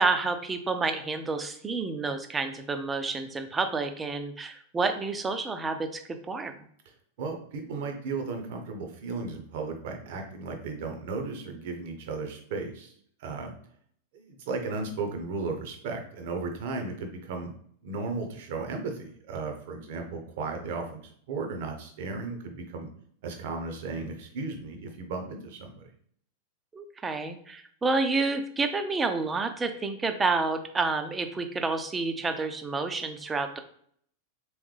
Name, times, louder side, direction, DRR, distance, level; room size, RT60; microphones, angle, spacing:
voice 1, 0.0-6.5 26.7-33.6, right 3 dB, 15° right, 7 dB, 0.4 m, -29 dB
voice 2, 7.2-12.9 13.2-13.5 14.1-17.5 17.8-22.9 23.2-25.9, right 4 dB, 50° right, 3 dB, 0.8 m, -35 dB
3.4 x 3.1 x 3.3 m, 0.62 s
figure-of-eight pair, 90°, 0 cm